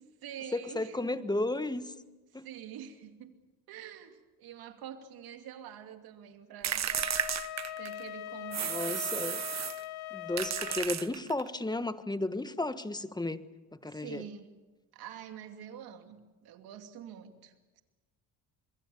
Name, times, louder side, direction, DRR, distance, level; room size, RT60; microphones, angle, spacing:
voice 1, 0.0-1.0 2.4-3.3 3.7-6.8 7.8-9.2 13.8-14.5 14.9-17.8, right 9 dB, 75° right, 6 dB, 2.7 m, -46 dB
voice 2, 0.5-1.9 2.3-2.5 8.6-9.4 10.1-13.4 13.8-14.2, left 2 dB, 10° left, 12 dB, 1.3 m, -33 dB
sound 1, 6.6-8.1 8.5-9.8 10.4-11.5, right 9 dB, 45° right, 1.2 m, -33 dB
Wind instrument woodwind instrument, 6.9-10.9, left 13 dB, 80° left, 1.6 m, -41 dB
26.0 x 23.0 x 7.1 m, 1.2 s
supercardioid pair, 85°, 37 cm